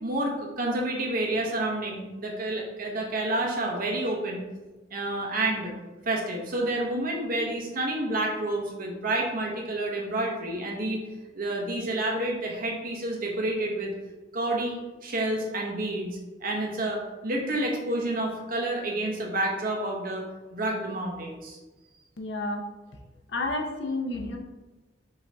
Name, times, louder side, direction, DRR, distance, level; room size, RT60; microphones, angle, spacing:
voice 1, 0.0-4.4 4.9-5.7 6.0-11.0 11.3-13.9 14.3-20.2 20.5-21.6, right 1 dB, 50° right, -1 dB, 1.0 m, -29 dB
voice 2, 22.2-22.6 23.3-24.4, left 2 dB, 70° left, 2 dB, 0.7 m, -30 dB
5.4 x 2.8 x 3.4 m, 1.2 s
head